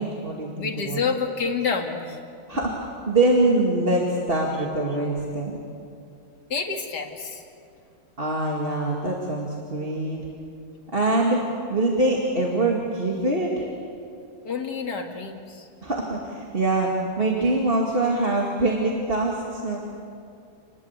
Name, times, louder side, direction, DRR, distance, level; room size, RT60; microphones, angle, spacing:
voice 1, 0.0-1.0 2.5-2.7 3.1-5.6 8.2-10.2 10.9-11.4 11.7-13.7 15.8-19.8, right 2 dB, 25° right, -2 dB, 2.4 m, -24 dB
voice 2, 0.6-2.2 6.5-7.4 14.4-15.7, left 5 dB, 50° left, 2 dB, 2.6 m, -28 dB
28.5 x 20.5 x 8.2 m, 2.5 s
omnidirectional pair, 2.3 m